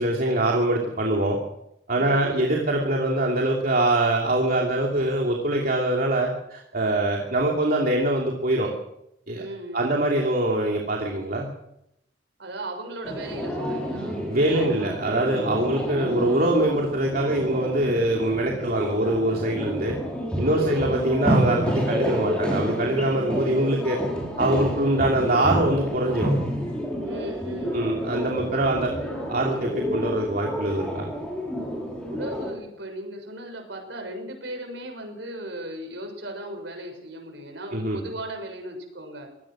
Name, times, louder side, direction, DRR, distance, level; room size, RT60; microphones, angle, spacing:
voice 1, 0.0-1.4 1.9-8.7 9.3-9.4 9.7-11.5 14.3-20.0 20.4-24.0 24.4-26.3 27.7-29.0 29.3-31.1 37.7-38.0, right 1 dB, 50° right, -1 dB, 2.9 m, -23 dB
voice 2, 1.9-2.6 9.3-10.0 12.4-15.1 18.5-18.8 20.4-20.9 27.0-28.2 28.6-28.9 32.0-39.3, right 1 dB, 65° right, 4 dB, 6.5 m, -37 dB
sound 1, 13.0-32.5, equal, 5° left, 5.7 m, -29 dB
23.5 x 18.0 x 6.4 m, 0.81 s
head